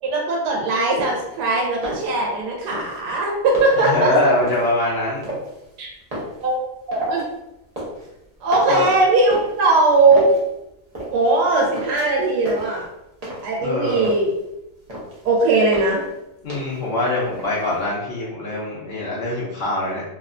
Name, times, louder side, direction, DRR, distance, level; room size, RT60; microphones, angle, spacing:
voice 1, 0.0-4.3 5.8-5.9 6.4-6.6 6.9-7.2 8.4-10.3 11.1-12.8 13.4-14.3 15.2-16.0, right 2 dB, 85° right, -2 dB, 1.2 m, -19 dB
sound 1, 0.9-1.3 1.7-2.4 2.7-4.0 4.4-4.7 5.2-5.7 6.0-7.3 7.5-8.1 8.5-10.4 10.9-11.4 11.6-12.2 12.5-13.6 13.9-14.4 14.7-15.3 15.7-16.1 16.5-16.9 17.2-17.9, equal, 60° right, 0.4 m, -34 dB
voice 2, 3.8-5.2 8.7-8.9 13.6-14.0 16.4-20.0, left 2 dB, 80° left, -6 dB, 0.5 m, -23 dB
2.9 x 2.1 x 2.4 m, 0.90 s
omnidirectional pair, 1.7 m